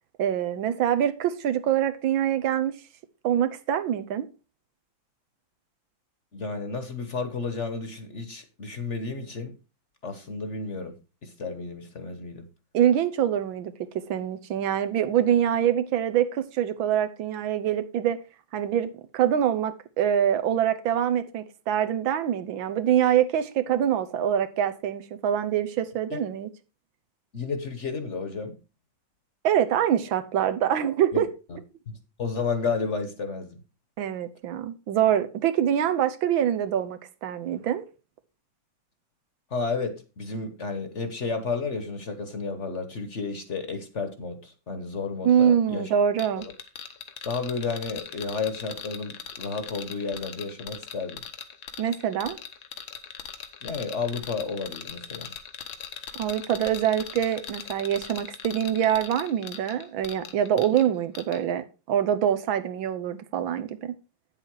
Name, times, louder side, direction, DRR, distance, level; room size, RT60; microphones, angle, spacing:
voice 1, 0.2-2.8 3.2-4.3 12.7-18.2 18.5-26.5 29.4-31.3 34.0-37.8 45.2-46.5 51.8-52.4 56.1-63.9, right 10 dB, 85° right, 1.7 m, -25 dB
voice 2, 6.3-9.6 10.0-12.5 26.1-26.2 27.3-28.6 31.1-31.2 31.5-31.6 31.9-33.6 39.5-45.9 46.4-46.5 47.2-51.2 53.6-55.3, left 4 dB, 45° left, 1.2 m, -32 dB
sound 1, 46.2-60.9 61.1-61.4, left 8 dB, 80° left, 1.9 m, -40 dB
9.0 x 7.5 x 4.7 m
omnidirectional pair, 2.1 m